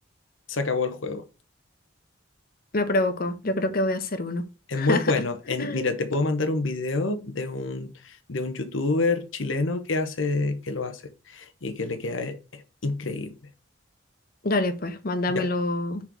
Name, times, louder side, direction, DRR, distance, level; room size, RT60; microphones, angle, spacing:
voice 1, 0.5-1.2 4.7-13.3 15.3-15.4, left 3 dB, 75° left, 1.0 m, -28 dB
voice 2, 2.7-4.4 4.7-5.1 5.6-5.9 14.4-16.0, left 2 dB, 50° left, 1.1 m, -26 dB
6.1 x 4.4 x 4.5 m
head